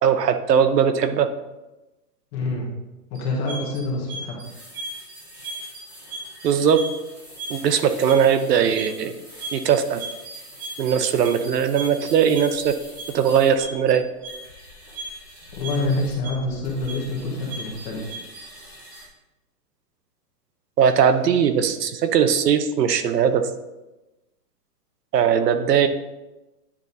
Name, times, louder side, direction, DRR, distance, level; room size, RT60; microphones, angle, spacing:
voice 1, 0.0-1.3 6.4-6.8 7.5-9.1 9.5-10.0 10.8-12.7 13.1-14.0 20.8-23.5 25.1-25.9, right 7 dB, 80° right, 10 dB, 0.9 m, -19 dB
voice 2, 2.3-2.7 3.1-4.4 15.6-18.1, left 2 dB, 20° left, -2 dB, 1.1 m, -26 dB
sound 1, 3.1-19.1, right 2 dB, 15° right, 0.6 m, -38 dB
9.9 x 4.0 x 4.0 m, 1.0 s
hypercardioid pair, 170°, 48 cm